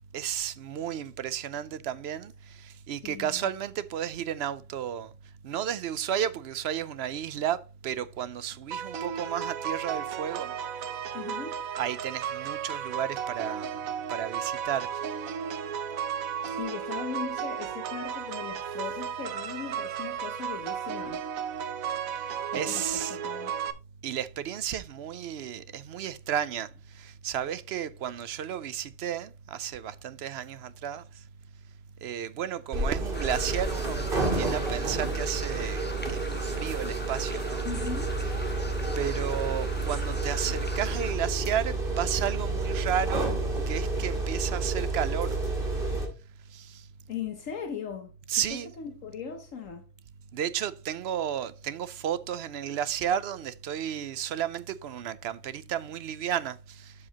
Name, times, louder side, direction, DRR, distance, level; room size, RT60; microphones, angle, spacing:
voice 1, 0.1-5.1 5.4-10.5 11.8-13.7 14.1-15.0 22.2-22.3 22.5-23.2 24.0-26.7 26.9-31.0 32.0-34.0 34.3-37.7 39.0-43.3 43.7-45.4 46.5-46.8 48.3-48.7 50.3-56.9, right 9 dB, 65° right, 0.7 m, -33 dB
voice 2, 3.0-3.5 11.1-11.6 16.5-21.2 22.5-23.6 37.6-38.2 47.1-48.1 48.5-49.8, left 7 dB, 70° left, 1.3 m, -38 dB
sound 1, 8.7-23.7, right 8 dB, 90° right, 1.2 m, -34 dB
sound 2, 32.7-46.1, right 3 dB, 40° right, 2.4 m, -30 dB
sound 3, 33.1-41.1, left 1 dB, 10° left, 0.9 m, -41 dB
12.0 x 4.9 x 2.9 m
omnidirectional pair, 1.4 m